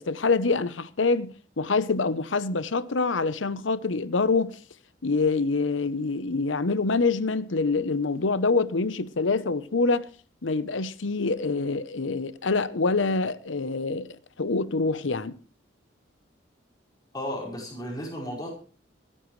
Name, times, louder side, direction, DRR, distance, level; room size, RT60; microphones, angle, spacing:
voice 1, 0.0-4.6 5.0-10.1 10.4-14.1 14.4-15.4, left 3 dB, 80° left, 0.8 m, -25 dB
voice 2, 17.1-18.5, equal, 20° left, 5.3 m, -34 dB
26.0 x 10.0 x 3.2 m
head